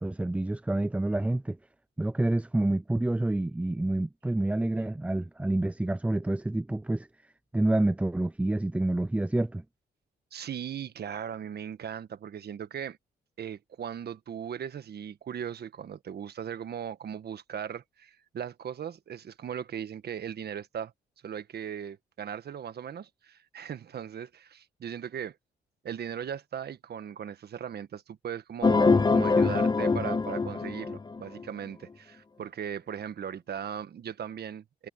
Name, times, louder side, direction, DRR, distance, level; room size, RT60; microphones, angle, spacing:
voice 1, 0.0-1.6 2.0-7.1 7.5-9.6, right 1 dB, 5° right, 0.4 m, -28 dB
voice 2, 10.3-13.0 13.4-20.9 21.2-25.4 25.8-34.9, right 8 dB, 55° right, 1.5 m, -38 dB
sound 1, 28.6-31.4, left 4 dB, 20° left, 1.0 m, -24 dB
cardioid pair, 90°, 20 cm